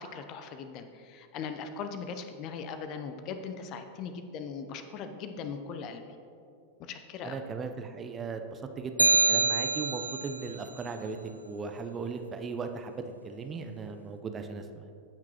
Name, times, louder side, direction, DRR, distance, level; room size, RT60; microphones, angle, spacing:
voice 1, 0.0-6.0 6.8-7.4, left 5 dB, 40° left, 8 dB, 0.6 m, -39 dB
voice 2, 7.2-11.2 11.4-14.9, right 4 dB, 20° right, 6 dB, 0.6 m, -37 dB
sound 1, 9.0-10.4, right 3 dB, 85° right, 0.3 m, -25 dB
15.0 x 5.9 x 3.0 m, 2.6 s
figure-of-eight pair, 90°, 0 cm